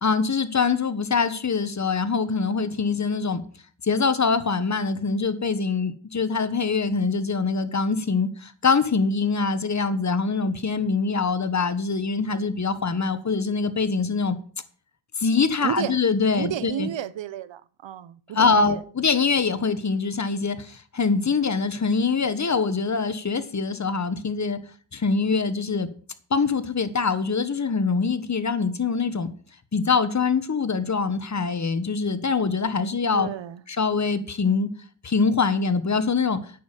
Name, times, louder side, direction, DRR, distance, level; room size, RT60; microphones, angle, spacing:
voice 1, 0.0-3.4 3.8-14.4 15.2-16.9 18.3-24.6 24.9-25.9 26.3-29.3 29.7-33.3 33.7-34.7 35.0-36.4, left 4 dB, 35° left, 1.4 m, -24 dB
voice 2, 15.6-15.9 16.3-18.8 33.1-33.6, right 11 dB, 70° right, 0.8 m, -32 dB
9.3 x 6.4 x 7.3 m
cardioid pair, 60°, 46 cm